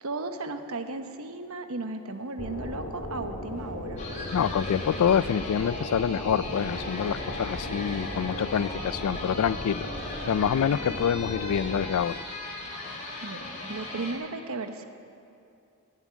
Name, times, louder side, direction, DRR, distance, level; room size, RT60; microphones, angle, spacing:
voice 1, 0.0-4.0 13.2-14.9, right 3 dB, 75° right, 7 dB, 1.0 m, -35 dB
sound 1, 2.4-11.9, left 1 dB, 60° left, 1.8 m, -36 dB
Musical instrument, 3.5-9.2, right 2 dB, ahead, 4.1 m, -53 dB
sound 2, 4.0-14.1, left 2 dB, 35° left, 3.4 m, -39 dB
voice 2, 4.3-9.9 10.3-12.2, left 8 dB, 85° left, 19 dB, 0.3 m, -26 dB
17.5 x 7.3 x 9.4 m, 2.6 s
head